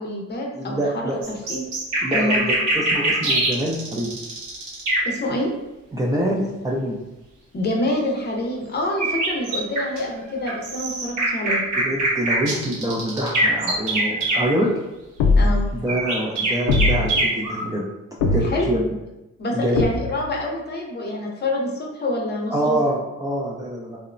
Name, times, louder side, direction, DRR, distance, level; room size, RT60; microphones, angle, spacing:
voice 1, 0.0-1.6 2.1-2.6 5.0-5.5 7.5-11.6 15.3-15.6 18.4-18.7 19.4-22.8, left 1 dB, 35° left, 0 dB, 0.6 m, -27 dB
voice 2, 0.5-1.2 2.0-4.1 5.9-7.0 11.8-14.7 15.7-17.8 18.2-18.8 19.5-19.8 22.5-24.0, right 1 dB, 10° right, -5 dB, 0.3 m, -25 dB
sound 1, 1.2-5.2 9.0-10.0 10.5-14.4 15.9-17.6, right 2 dB, 85° right, 1.0 m, -23 dB
sound 2, 15.2-15.8 16.7-17.3 18.2-18.8 19.8-20.4, left 3 dB, 75° left, 0.4 m, -21 dB
2.8 x 2.0 x 2.5 m, 0.99 s
cardioid pair, 90°, 30 cm